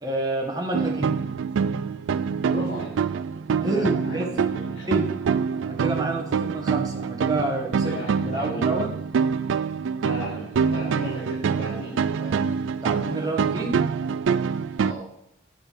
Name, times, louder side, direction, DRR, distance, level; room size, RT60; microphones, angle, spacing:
voice 1, 0.0-1.1 3.6-4.3 4.9-5.1 5.6-7.9 8.3-8.9 12.8-13.7, right 2 dB, 20° right, 0 dB, 1.5 m, -28 dB
sound 1, 0.7-14.9, right 6 dB, 85° right, 0.4 m, -25 dB
voice 2, 2.4-2.9 3.6-4.4 4.7-4.9 7.8-8.7 10.0-12.5 14.8-15.0, left 1 dB, 65° left, -9 dB, 3.4 m, -35 dB
9.2 x 6.6 x 4.6 m, 0.77 s
head